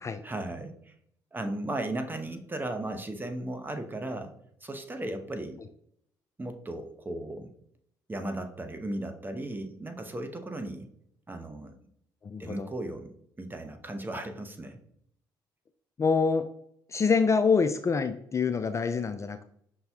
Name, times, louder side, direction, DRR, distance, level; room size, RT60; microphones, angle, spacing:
voice 1, 0.2-0.9 1.3-4.3 4.6-5.6 6.4-7.5 8.1-10.9 11.3-11.8 12.4-13.1 13.4-14.8, right 1 dB, 20° right, 6 dB, 0.9 m, -36 dB
voice 2, 12.2-12.7 16.0-16.5 16.9-19.4, left 5 dB, 30° left, 10 dB, 0.3 m, -26 dB
5.5 x 2.7 x 3.5 m, 0.69 s
hypercardioid pair, 55°, 10 cm